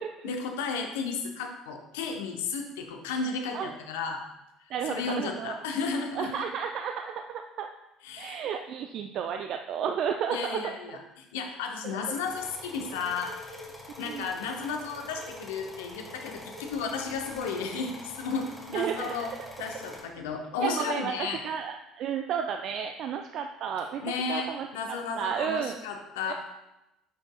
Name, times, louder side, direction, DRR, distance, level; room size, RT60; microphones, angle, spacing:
voice 1, 0.2-4.2 4.9-6.4 8.0-8.4 10.3-13.3 14.0-19.3 19.6-21.4 24.0-26.3, left 5 dB, 75° left, 3 dB, 0.8 m, -33 dB
voice 2, 4.7-5.6 6.1-7.7 8.2-10.7 11.8-12.2 14.0-14.3 18.7-19.5 20.6-21.1 21.4-25.8 26.3-26.4, right 8 dB, 55° right, 5 dB, 0.4 m, -33 dB
sound 1, 12.3-20.0, left 1 dB, 10° left, 1.9 m, -45 dB
9.1 x 5.3 x 2.2 m, 0.93 s
hypercardioid pair, 60°, 0 cm